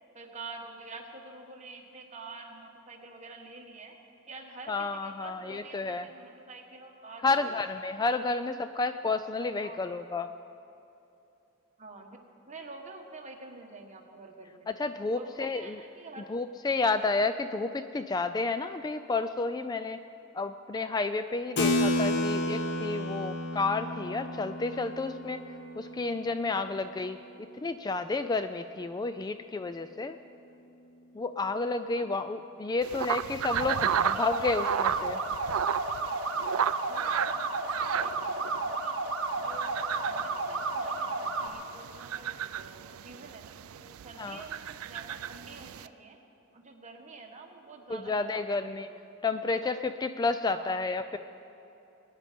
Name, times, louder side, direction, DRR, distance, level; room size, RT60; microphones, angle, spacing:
voice 1, 0.1-4.0 4.3-7.6 9.6-9.9 11.8-12.2 12.5-14.7 15.1-16.3 31.9-32.2 32.7-33.0 33.6-35.3 36.9-37.4 37.7-39.0 39.4-46.2 46.5-49.0 49.4-49.7 50.4-50.8, right 3 dB, 35° right, 1 dB, 1.5 m, -48 dB
voice 2, 4.7-6.1 7.2-10.3 14.7-15.8 16.3-20.0 20.3-25.4 25.8-30.2 31.2-35.2 44.2-44.4 47.9-48.9 49.2-51.2, left 3 dB, 20° left, 10 dB, 0.3 m, -31 dB
Keyboard (musical), 21.6-27.6, left 1 dB, 60° left, 1.1 m, -32 dB
sound 1, 32.8-45.9, right 9 dB, 85° right, 0.4 m, -34 dB
sound 2, 33.5-41.5, right 3 dB, 65° right, 1.1 m, -32 dB
22.0 x 9.8 x 5.2 m, 2.8 s
head